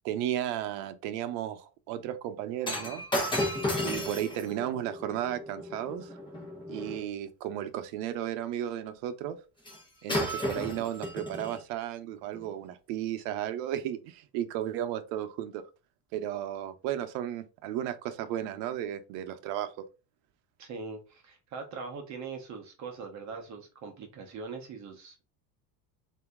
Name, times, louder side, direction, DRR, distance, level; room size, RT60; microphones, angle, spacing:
voice 1, 0.0-3.0 3.8-6.1 6.7-9.4 10.0-15.6 16.1-19.9, right 11 dB, 80° right, 0.8 m, -34 dB
Shatter, 2.6-7.0 9.7-9.8 10.1-11.6 12.3-12.5, left 1 dB, 10° left, 1.0 m, -33 dB
voice 2, 20.6-25.2, right 4 dB, 35° right, 0.8 m, -41 dB
3.8 x 2.8 x 3.5 m
cardioid pair, 150°, 47 cm